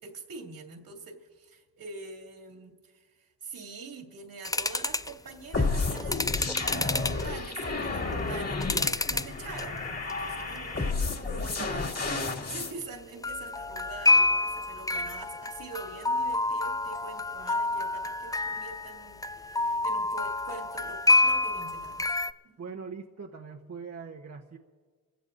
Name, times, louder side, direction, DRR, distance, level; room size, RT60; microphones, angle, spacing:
voice 1, 0.0-22.1 22.4-22.5, right 4 dB, 65° right, 2 dB, 2.6 m, -44 dB
sound 1, 4.4-5.1 5.9-7.3 7.9-9.3 9.6-10.1 10.6-10.7 13.2-22.3, left 2 dB, 10° left, 0.4 m, -28 dB
sound 2, 5.5-12.7, left 3 dB, 40° left, 2.5 m, -31 dB
voice 2, 11.6-12.2 22.6-24.6, right 5 dB, 40° right, 1 dB, 1.2 m, -42 dB
28.5 x 16.5 x 2.7 m, 1.5 s
cardioid pair, 60°, 38 cm